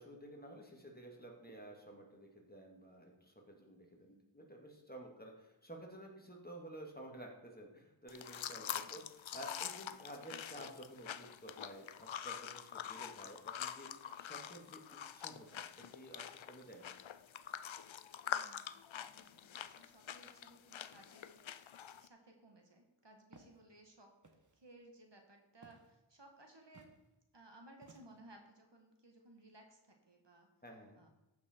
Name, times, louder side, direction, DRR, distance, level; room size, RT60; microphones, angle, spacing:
voice 1, 0.0-14.8 15.1-16.9 30.6-31.0, right 1 dB, 20° left, 1 dB, 2.1 m, -52 dB
voice 2, 4.0-4.3 8.8-9.1 18.3-21.7 22.0-24.1 24.5-26.9 27.3-30.5 31.0-31.1, right 1 dB, 55° right, 3 dB, 1.7 m, -61 dB
sound 1, 8.1-22.1, left 9 dB, 70° left, 0.6 m, -45 dB
Walk footsteps, 23.3-23.6 24.2-24.6 25.6-26.0 26.7-27.0 27.8-28.3, right 2 dB, 35° right, 1.3 m, -61 dB
14.5 x 6.0 x 4.5 m, 1.0 s
wide cardioid pair, 50°, 50 cm